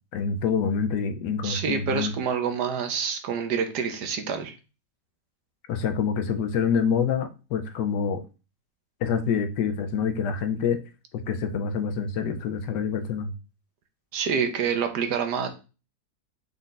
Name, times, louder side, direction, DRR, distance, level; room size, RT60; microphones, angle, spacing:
voice 1, 0.1-2.1 5.7-8.2 9.0-10.8 11.3-13.3, left 6 dB, 75° left, 8 dB, 1.1 m, -26 dB
voice 2, 1.4-4.6 14.1-15.5, right 6 dB, 70° right, 7 dB, 1.2 m, -27 dB
5.4 x 2.4 x 3.8 m, 0.31 s
omnidirectional pair, 1.9 m